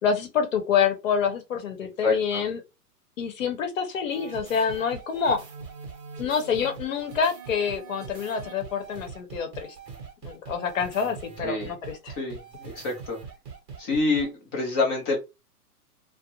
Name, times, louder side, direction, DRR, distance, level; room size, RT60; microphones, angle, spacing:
voice 1, 0.0-2.6 3.2-5.4 6.2-9.7 10.2-12.1, left 6 dB, 55° left, 0.9 m, -27 dB
voice 2, 2.0-2.4 11.4-11.7 12.2-13.2 13.8-15.2, left 3 dB, 15° left, 0.5 m, -27 dB
sound 1, 4.1-14.3, right 5 dB, 25° right, 1.0 m, -42 dB
2.4 x 2.1 x 2.9 m
hypercardioid pair, 130°, 47 cm